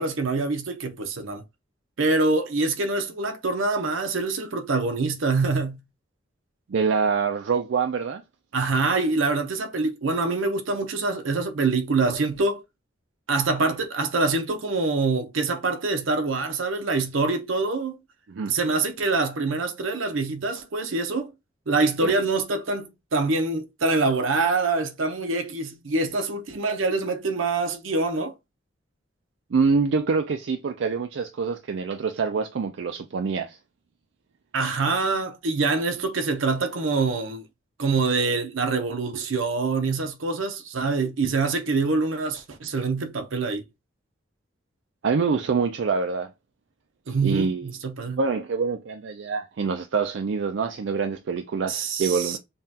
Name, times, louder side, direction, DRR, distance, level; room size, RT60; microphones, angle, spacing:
voice 1, 0.0-1.4 2.0-5.8 8.5-12.6 13.3-18.0 18.5-21.3 21.7-28.3 34.5-37.4 37.8-43.6 47.1-48.2 51.7-52.4, right 3 dB, 85° right, 0.8 m, -25 dB
voice 2, 6.7-8.2 18.3-18.5 22.0-22.1 29.5-33.6 45.0-46.3 47.2-47.7 48.2-52.4, right 5 dB, 65° right, 0.4 m, -25 dB
5.4 x 2.3 x 2.8 m
head